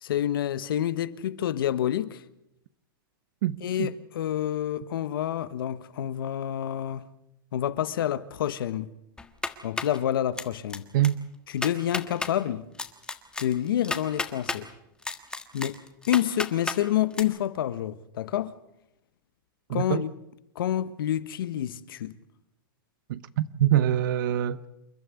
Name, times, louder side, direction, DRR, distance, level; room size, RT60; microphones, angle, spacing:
voice 1, 0.0-2.2 3.6-7.0 7.5-8.9 9.6-10.9 11.5-12.7 13.4-14.7 15.5-15.8 16.1-18.5 19.7-20.1 20.5-22.1, left 11 dB, 80° left, 1.2 m, -28 dB
voice 2, 3.4-3.9 10.9-11.2 19.7-20.0 23.1-24.7, right 12 dB, 65° right, 0.8 m, -25 dB
sound 1, 9.2-10.0 10.4-10.8 11.0-11.1 11.5-12.3 12.8-14.6 15.0-16.8 17.1-17.2, left 3 dB, 5° left, 1.5 m, -32 dB
28.5 x 11.5 x 9.5 m
supercardioid pair, 140°, 12 cm